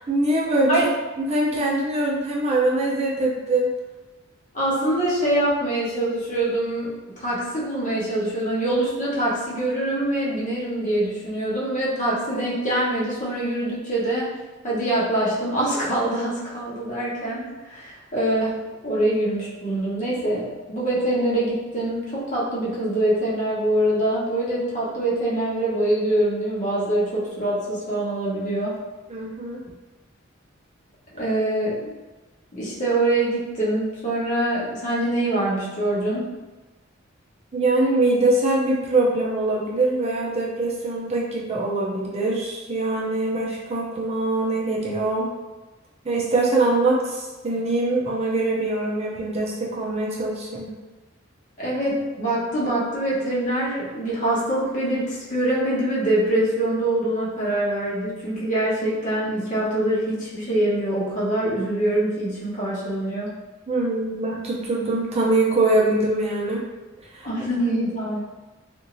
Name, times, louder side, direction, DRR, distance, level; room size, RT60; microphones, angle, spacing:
voice 1, 0.1-0.8 1.2-3.7 29.1-29.6 37.5-45.3 46.0-50.7 63.7-66.6 67.1-67.3, right 2 dB, 30° right, -4 dB, 0.5 m, -23 dB
voice 2, 4.5-14.3 14.6-28.8 31.1-31.9 32.5-36.3 51.6-63.4 67.2-68.2, right 1 dB, 40° left, -6 dB, 0.9 m, -24 dB
2.6 x 2.5 x 3.0 m, 1.2 s
head